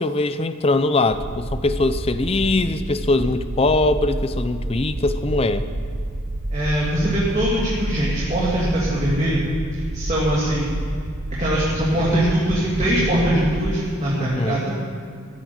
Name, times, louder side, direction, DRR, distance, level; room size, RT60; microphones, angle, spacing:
voice 1, 0.0-5.7 14.2-14.6, left 2 dB, 30° left, 11 dB, 0.5 m, -21 dB
sound 1, 1.1-13.7, right 1 dB, 60° right, 0.9 m, -29 dB
voice 2, 6.5-9.4 9.7-10.8 11.4-14.7, right 1 dB, 35° right, -7 dB, 2.7 m, -22 dB
14.5 x 9.2 x 8.6 m, 2.3 s
head